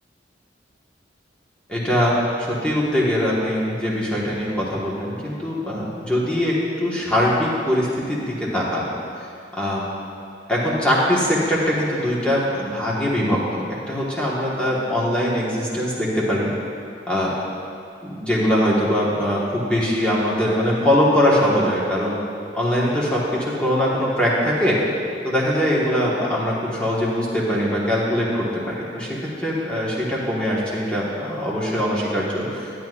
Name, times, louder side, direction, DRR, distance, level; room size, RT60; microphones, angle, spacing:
voice 1, 1.7-8.9 9.5-9.9 10.5-16.5 17.1-17.3 18.0-22.2 22.5-24.8 25.2-32.8, equal, 5° left, -7 dB, 1.5 m, -22 dB
11.5 x 9.3 x 2.5 m, 2.6 s
head